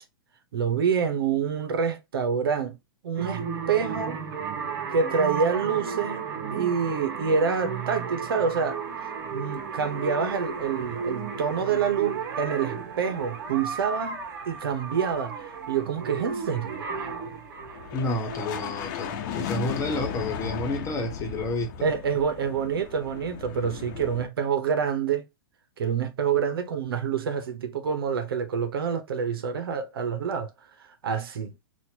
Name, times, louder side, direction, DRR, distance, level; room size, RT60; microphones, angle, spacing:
voice 1, 0.5-2.8 3.0-4.2 4.9-6.2 6.5-8.8 9.3-16.8 21.8-25.2 25.8-30.5 30.8-31.5, right 6 dB, 85° right, 0.9 m, -27 dB
sound 1, 3.1-18.7, right 5 dB, 65° right, 1.1 m, -34 dB
sound 2, 10.1-11.1 11.3-12.2 12.5-24.3, left 8 dB, 55° left, 0.8 m, -37 dB
voice 2, 17.9-21.7, left 2 dB, 25° left, 1.1 m, -30 dB
4.2 x 2.5 x 2.8 m
hypercardioid pair, 125°, 12 cm